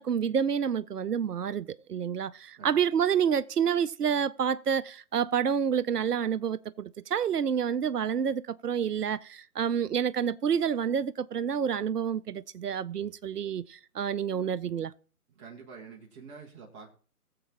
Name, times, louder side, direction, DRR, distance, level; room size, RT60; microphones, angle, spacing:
voice 1, 0.0-14.9, right 7 dB, 85° right, 0.6 m, -28 dB
voice 2, 15.3-16.9, right 5 dB, 20° right, 1.4 m, -47 dB
20.5 x 7.6 x 2.9 m
figure-of-eight pair, 140°, 46 cm